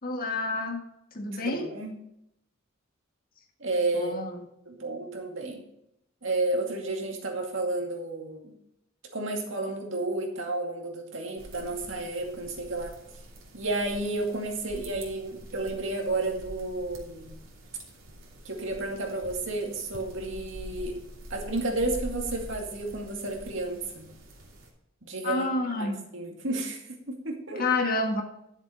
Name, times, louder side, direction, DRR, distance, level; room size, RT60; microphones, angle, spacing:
voice 1, 0.0-0.8 1.1-1.7 3.9-4.4 25.2-26.0 27.6-28.2, left 3 dB, 45° left, 3 dB, 1.7 m, -28 dB
voice 2, 1.3-1.9 3.6-4.1 4.7-5.7 6.2-8.5 9.1-12.9 13.5-17.4 18.4-21.0 21.3-24.1 25.0-25.5 25.8-27.7, right 2 dB, 70° right, 1 dB, 2.3 m, -32 dB
sound 1, 11.4-24.7, equal, 85° right, 2.8 m, -45 dB
11.0 x 7.6 x 5.0 m, 0.80 s
head